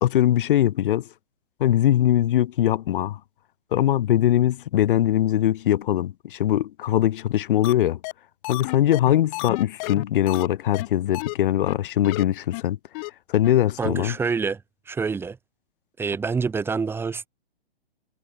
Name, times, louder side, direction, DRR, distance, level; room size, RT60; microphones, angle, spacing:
voice 1, 0.0-1.1 1.6-3.2 3.7-8.0 8.5-12.8 13.3-14.2, left 12 dB, 55° left, 1.2 m, -21 dB
sound 1, 7.6-7.7 8.0-8.1 8.4-10.5 10.7-10.9 11.1-11.3 11.7-11.8 12.0-12.2 12.5-12.6 12.9-13.1 13.4-13.5 13.8-13.9, left 28 dB, 30° left, 1.8 m, -31 dB
voice 2, 13.8-14.6 14.9-15.4 16.0-17.3, right 5 dB, 5° right, 1.4 m, -26 dB
hypercardioid pair, 145°, 32 cm